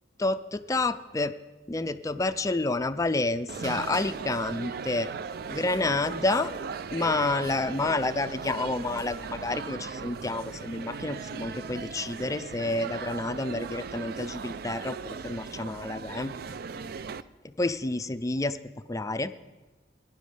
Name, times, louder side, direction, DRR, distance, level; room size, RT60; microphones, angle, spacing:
voice 1, 0.2-1.3 1.7-5.1 5.5-6.5 6.9-15.0 15.2-16.3 17.6-18.6 18.9-19.3, left 2 dB, 20° left, 12 dB, 0.4 m, -29 dB
sound 1, 3.5-17.2, right 5 dB, 60° right, 0.4 m, -38 dB
17.5 x 10.5 x 3.3 m, 1.2 s
head